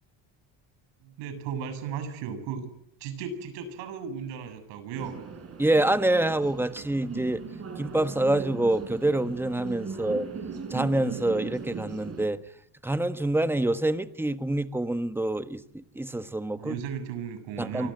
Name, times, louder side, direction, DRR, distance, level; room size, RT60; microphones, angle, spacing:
voice 1, 1.0-2.7 3.0-5.1 9.9-10.2 16.5-17.9, right 7 dB, 85° right, 10 dB, 7.6 m, -36 dB
sound 1, 4.9-12.3, right 5 dB, 35° right, 7.4 m, -38 dB
voice 2, 5.6-7.4 7.8-10.3 10.7-12.4 12.8-16.8 17.6-17.9, right 1 dB, 5° right, 10 dB, 1.4 m, -26 dB
30.0 x 25.0 x 8.0 m, 0.73 s
cardioid pair, 135°, 43 cm